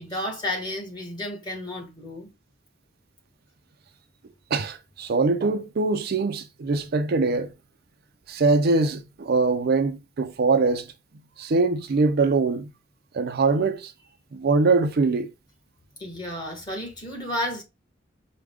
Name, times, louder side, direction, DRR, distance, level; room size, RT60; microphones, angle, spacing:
voice 1, 0.0-2.3 16.0-17.6, left 1 dB, 20° left, 1.4 m, -32 dB
voice 2, 4.5-7.5 8.3-10.9 11.4-12.7 13.1-13.9 14.3-15.3, right 3 dB, 50° right, 0.4 m, -22 dB
4.8 x 2.2 x 3.5 m
head